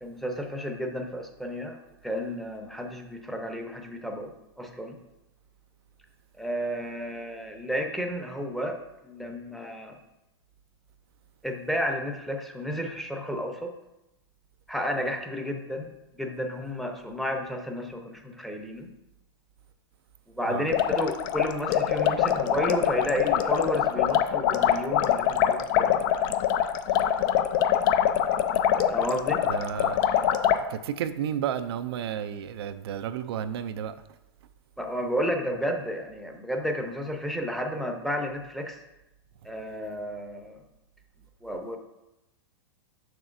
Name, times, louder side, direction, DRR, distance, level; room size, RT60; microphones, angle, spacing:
voice 1, 0.0-1.8 2.0-4.3 4.6-5.0 6.4-8.8 9.0-10.0 11.4-13.7 14.7-18.9 20.3-26.4 26.9-27.1 28.9-29.4 34.8-38.8 39.4-40.6 41.4-41.8, equal, ahead, 3 dB, 0.7 m, -32 dB
sound 1, 20.7-30.6, left 10 dB, 50° left, 0.4 m, -24 dB
voice 2, 29.5-30.0 30.7-33.9, right 9 dB, 70° right, 10 dB, 0.4 m, -32 dB
6.7 x 6.1 x 2.6 m, 0.93 s
hypercardioid pair, 120°, 14 cm